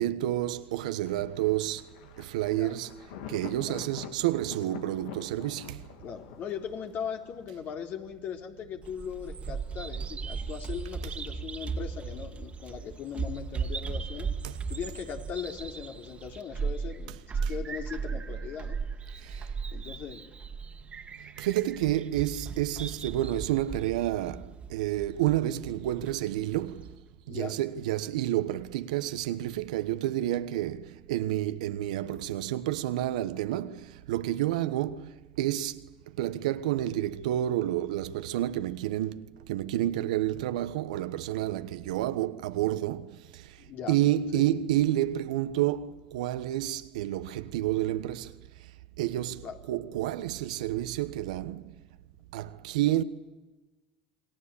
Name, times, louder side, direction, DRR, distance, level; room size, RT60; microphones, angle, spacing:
voice 1, 0.0-1.9 2.2-2.9 3.3-5.8 14.4-14.6 17.1-17.2 17.4-17.5 19.2-19.5 21.2-27.0 27.3-48.7 49.0-51.8 52.3-53.0, right 13 dB, 85° right, 1.2 m, -30 dB
Thunder, 1.0-7.4, left 9 dB, 80° left, 2.7 m, -46 dB
voice 2, 6.0-14.3 14.7-17.2 17.5-18.8 19.7-20.3 27.3-27.6 43.6-44.0 44.3-44.4 49.4-49.6, left 8 dB, 55° left, 4.0 m, -39 dB
Bird vocalization bird call bird song, 8.8-27.0, right 5 dB, 30° right, 2.2 m, -37 dB
27.5 x 21.0 x 8.5 m
supercardioid pair, 90°, 4 cm